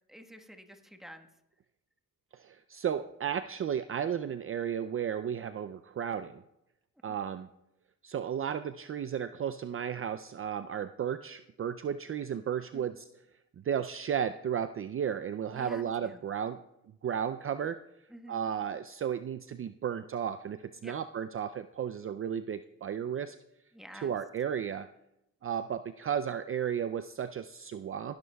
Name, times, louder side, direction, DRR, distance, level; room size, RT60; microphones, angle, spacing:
voice 1, 0.1-1.3 12.7-13.0 15.5-16.2 18.1-18.5 20.8-20.9 23.7-24.1, equal, ahead, 4 dB, 1.3 m, -49 dB
voice 2, 2.3-6.4 7.0-7.5 8.0-13.1 13.6-16.6 17.0-17.8 18.3-23.4 23.9-24.9 25.4-28.2, right 8 dB, 40° right, 11 dB, 0.4 m, -34 dB
18.0 x 11.5 x 2.3 m, 0.86 s
cardioid pair, 80°, 33 cm